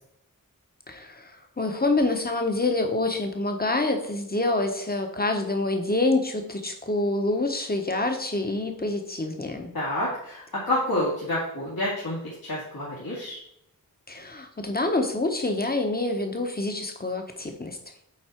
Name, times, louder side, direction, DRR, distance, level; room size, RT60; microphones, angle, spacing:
voice 1, 0.9-1.3 1.6-9.7 14.1-17.8, left 2 dB, 25° left, 5 dB, 1.1 m, -26 dB
voice 2, 9.7-13.4, left 1 dB, 70° left, -8 dB, 2.3 m, -28 dB
8.5 x 4.1 x 4.5 m, 0.73 s
wide cardioid pair, 80°, 36 cm